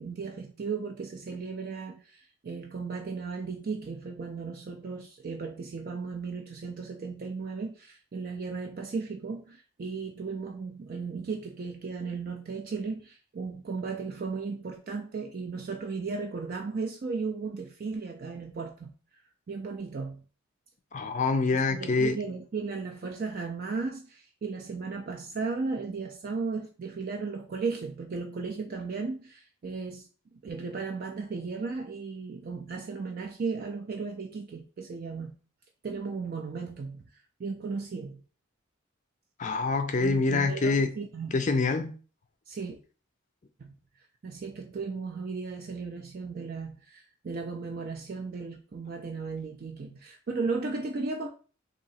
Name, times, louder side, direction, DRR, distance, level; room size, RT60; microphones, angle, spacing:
voice 1, 0.0-20.2 21.5-35.4 35.8-38.2 40.0-41.4 42.5-42.8 43.6-51.3, right 4 dB, 45° right, 0.4 m, -36 dB
voice 2, 20.9-22.2 39.4-40.9 41.3-41.9, left 3 dB, 35° left, 0.4 m, -25 dB
2.9 x 2.7 x 4.1 m
head